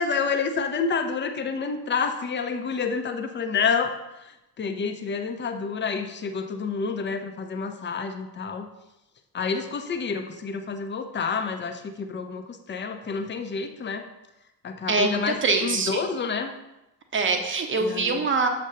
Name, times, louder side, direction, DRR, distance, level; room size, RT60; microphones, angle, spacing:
voice 1, 0.0-3.9 4.6-8.7 9.3-14.1 14.6-16.5 17.8-18.2, left 5 dB, 25° left, 6 dB, 0.6 m, -28 dB
voice 2, 14.9-16.0 17.1-18.5, right 4 dB, 25° right, 5 dB, 0.8 m, -24 dB
7.1 x 2.5 x 5.6 m, 0.94 s
figure-of-eight pair, 45°, 48 cm